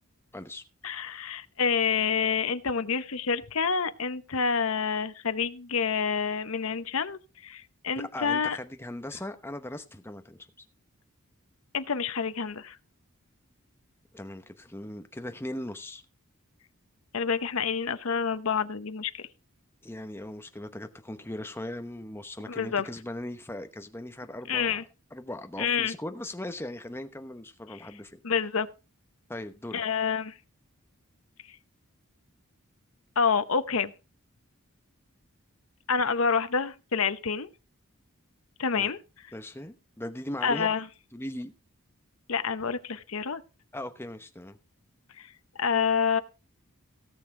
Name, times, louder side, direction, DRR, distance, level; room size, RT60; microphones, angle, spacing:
voice 1, 0.3-0.6 8.0-10.4 14.1-16.0 19.8-24.8 25.1-28.2 29.3-29.8 38.8-38.9 39.3-40.7 41.1-41.5 43.7-44.6, left 1 dB, 10° left, 0.9 m, -39 dB
voice 2, 0.8-8.6 11.7-12.8 17.1-19.3 22.5-22.9 24.5-24.8 25.6-25.9 28.2-28.7 29.7-30.4 31.5-31.6 33.2-33.9 35.9-37.5 38.6-39.0 40.4-40.9 42.3-43.4 45.2-45.3 45.6-46.2, left 6 dB, 70° left, 0.9 m, -28 dB
17.0 x 7.0 x 3.7 m
head